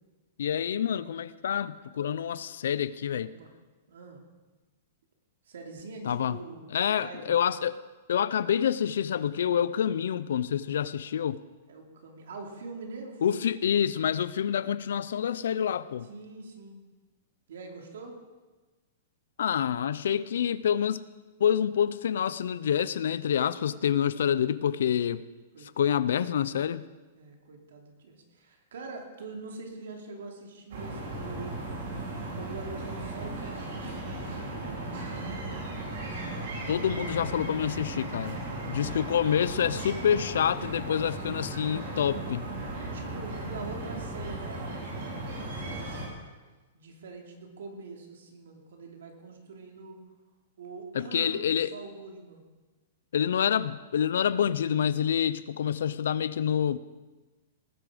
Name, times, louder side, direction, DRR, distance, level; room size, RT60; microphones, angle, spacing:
voice 1, 0.4-3.3 6.0-6.4 6.7-7.7 8.1-11.4 13.2-16.1 19.4-21.0 21.4-25.2 25.6-26.9 36.7-38.4 38.7-42.4 50.9-51.7 53.1-56.8, left 9 dB, 75° left, 17 dB, 0.6 m, -27 dB
voice 2, 3.2-3.5 3.9-4.2 5.4-6.7 7.0-7.4 11.7-13.5 16.1-16.8 17.5-18.2 25.5-26.1 27.1-31.7 32.4-35.4 38.4-38.9 41.1-41.2 42.9-46.2 46.7-50.0 50.6-51.4 51.7-52.4, right 3 dB, 80° right, 2 dB, 2.9 m, -44 dB
sound 1, 30.7-46.1, right 2 dB, 55° right, 4.8 m, -36 dB
18.5 x 9.9 x 5.1 m, 1.2 s
supercardioid pair, 180°, 0 cm